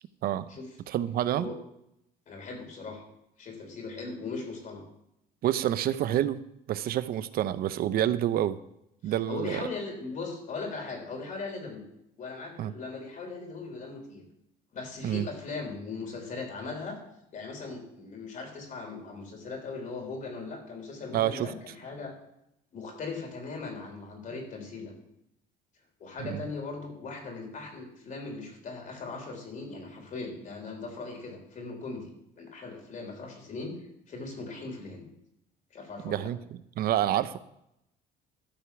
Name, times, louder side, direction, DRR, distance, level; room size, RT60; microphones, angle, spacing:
voice 1, 0.9-1.5 5.4-8.6 9.0-9.6 12.6-12.7 15.0-15.3 21.1-21.5 26.2-26.4 36.0-36.4 36.8-37.4, right 12 dB, 65° right, 14 dB, 0.6 m, -28 dB
voice 2, 2.3-3.0 3.4-4.8 9.0-11.8 12.2-14.2 14.7-17.0 17.3-22.1 22.7-25.0 26.0-33.7 34.1-35.0 35.7-36.3, left 3 dB, 50° left, 2 dB, 3.4 m, -39 dB
13.0 x 4.8 x 7.0 m, 0.80 s
cardioid pair, 110°, 17 cm